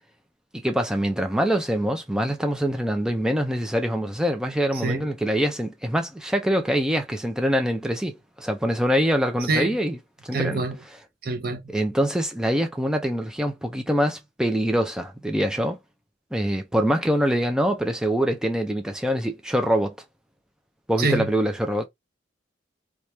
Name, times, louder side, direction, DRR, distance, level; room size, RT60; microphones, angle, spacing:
voice 1, 0.5-10.0 10.2-10.6 11.7-15.8 16.3-19.9 20.9-21.9, equal, 5° right, 0.4 m, -24 dB
voice 2, 4.7-5.1 9.5-9.7 10.3-10.8 11.2-11.6 21.0-21.3, right 3 dB, 50° right, 0.6 m, -25 dB
2.9 x 2.3 x 3.2 m
head